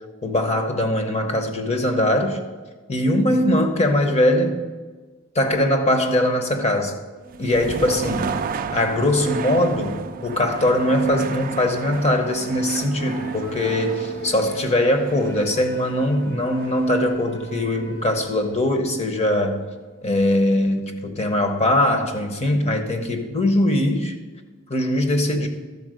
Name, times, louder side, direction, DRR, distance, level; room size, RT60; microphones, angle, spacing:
voice 1, 0.2-2.4 2.9-4.6 5.3-7.0 7.4-8.4 8.7-19.6 20.0-24.2 24.7-25.5, left 1 dB, 30° left, 6 dB, 1.0 m, -21 dB
sound 1, 7.3-19.1, right 5 dB, 40° right, 0.4 m, -33 dB
sound 2, 12.7-19.3, left 2 dB, 55° left, 0.9 m, -43 dB
12.5 x 4.4 x 7.7 m, 1.3 s
head